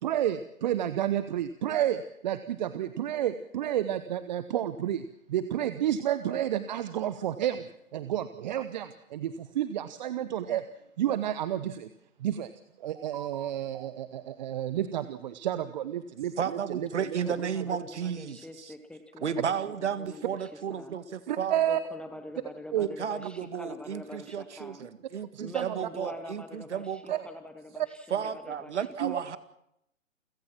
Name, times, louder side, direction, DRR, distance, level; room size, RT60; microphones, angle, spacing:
voice 1, 0.0-7.6 7.9-10.7 11.0-11.9 12.2-12.5 12.8-17.2 21.3-21.8 22.7-22.9 25.3-25.8 27.1-27.2 29.0-29.4, right 11 dB, 35° right, 13 dB, 1.0 m, -30 dB
voice 2, 16.4-18.7 19.2-21.6 23.0-27.2 28.1-29.4, right 7 dB, 60° right, 13 dB, 2.0 m, -33 dB
voice 3, 17.2-20.9 21.7-24.9 25.4-28.8 29.1-29.4, left 1 dB, 5° left, 8 dB, 1.0 m, -45 dB
29.0 x 16.0 x 6.0 m, 0.79 s
figure-of-eight pair, 135°, 39 cm